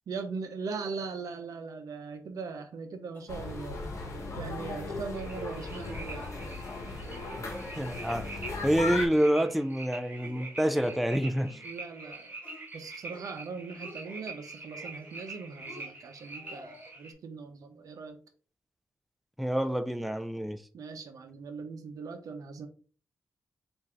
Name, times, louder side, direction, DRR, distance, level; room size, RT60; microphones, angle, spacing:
voice 1, 0.1-3.8 4.4-6.4 11.6-12.4 12.7-18.2 20.7-22.7, right 4 dB, 75° right, 0.7 m, -40 dB
sound 1, 3.1-3.7 4.0-4.1 4.4-4.7 5.1-5.6 5.9-6.3 6.7-7.2 7.5-8.2 8.5-9.0 9.3-9.7 10.2-11.7 12.0-12.6 13.0-13.4 13.6-14.3 14.7-15.3 15.6-16.9, left 1 dB, 25° left, 1.8 m, -51 dB
sound 2, 3.3-9.1, left 2 dB, 55° left, 1.1 m, -37 dB
sound 3, 5.1-17.1, right 2 dB, 25° right, 1.9 m, -45 dB
voice 2, 7.8-8.3 8.6-11.6 19.4-20.6, equal, ahead, 0.4 m, -27 dB
4.3 x 2.6 x 3.7 m
cardioid pair, 105°, 6 cm